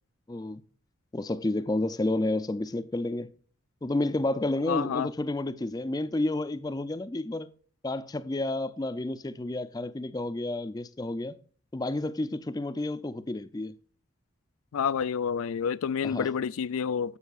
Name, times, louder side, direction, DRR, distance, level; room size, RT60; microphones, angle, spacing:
voice 1, 0.3-0.6 1.1-3.3 3.8-7.5 7.8-11.4 11.7-13.7 16.0-16.3, left 2 dB, 20° left, 0.4 m, -30 dB
voice 2, 4.7-5.1 14.7-17.2, left 7 dB, 85° left, 0.4 m, -29 dB
15.0 x 5.6 x 2.4 m
head